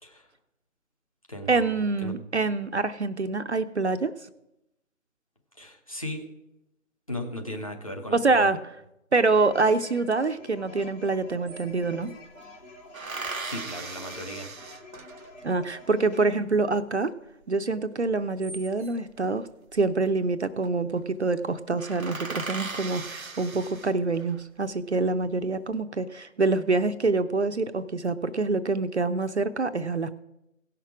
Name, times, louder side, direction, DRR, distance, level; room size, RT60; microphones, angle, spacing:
voice 1, 0.0-0.3 1.3-2.1 5.5-6.3 7.1-8.5 13.4-14.5, left 1 dB, 25° left, 2 dB, 0.9 m, -37 dB
voice 2, 1.5-4.1 8.1-8.6 9.1-12.1 15.4-17.1 17.5-30.1, right 3 dB, 55° right, 10 dB, 0.6 m, -26 dB
sound 1, 9.2-16.3, left 2 dB, 65° left, 3.7 m, -48 dB
sound 2, 10.8-10.9 11.1-12.2 12.9-15.5 18.1-19.1 20.3-20.7 21.0-21.1 21.4-21.5 21.8-24.3 24.9-25.6, right 3 dB, 85° right, 0.8 m, -38 dB
17.0 x 5.9 x 4.8 m, 0.87 s
figure-of-eight pair, 160°, 41 cm